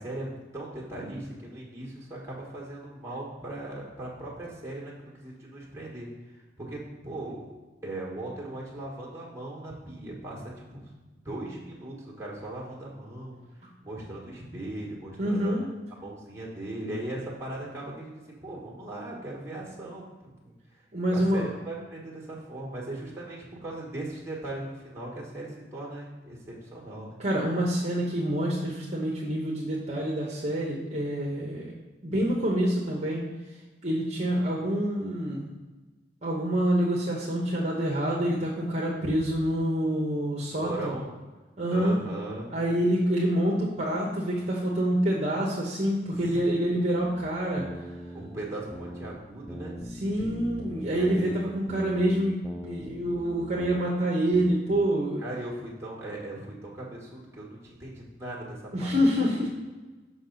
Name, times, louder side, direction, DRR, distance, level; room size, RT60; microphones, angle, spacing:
voice 1, 0.0-7.5 7.8-10.9 11.2-13.4 13.8-15.5 16.0-20.0 20.4-20.8 21.1-27.2 40.6-41.1 41.7-42.5 46.1-46.6 48.1-49.7 50.9-51.5 55.2-59.3, right 1 dB, 15° right, -5 dB, 1.5 m, -38 dB
voice 2, 15.2-15.7 20.9-21.5 27.2-31.7 32.0-33.3 33.8-35.5 36.2-40.9 41.6-42.0 42.5-47.8 49.9-55.2 58.7-59.5, equal, 40° right, -3 dB, 0.9 m, -27 dB
sound 1, 47.0-49.2 49.5-53.9 54.3-54.9, equal, ahead, 0.4 m, -41 dB
6.2 x 5.5 x 3.9 m, 1.2 s
head